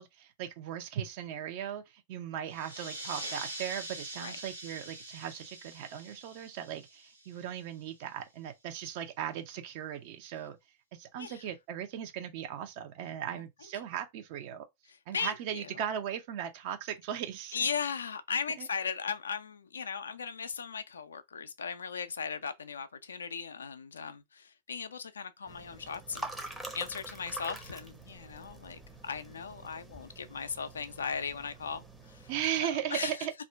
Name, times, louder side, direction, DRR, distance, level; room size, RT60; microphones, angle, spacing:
voice 1, 0.0-10.6 10.9-14.6 15.1-17.6 18.6-18.7 32.3-33.3, right 10 dB, 45° right, 0.5 m, -37 dB
sound 1, 2.5-7.7, right 1 dB, 85° right, 0.7 m, -44 dB
voice 2, 15.1-15.8 17.5-32.3 32.6-33.2, left 6 dB, 70° left, 0.3 m, -37 dB
sound 2, 25.5-32.5, right 1 dB, 5° right, 0.6 m, -46 dB
2.5 x 2.1 x 3.3 m
figure-of-eight pair, 90°, 0 cm